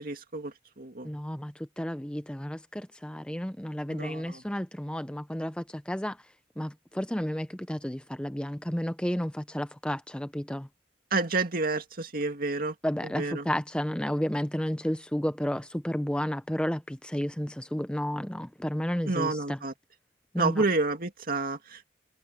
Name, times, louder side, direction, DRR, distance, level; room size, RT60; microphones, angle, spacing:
voice 1, 0.0-1.1 3.9-4.4 11.1-12.7 13.2-13.5 19.1-19.7 20.4-21.9, right 3 dB, 50° right, 2.3 m, -29 dB
voice 2, 1.0-6.3 6.6-10.7 12.8-19.6 20.3-20.6, equal, 5° left, 0.6 m, -32 dB
head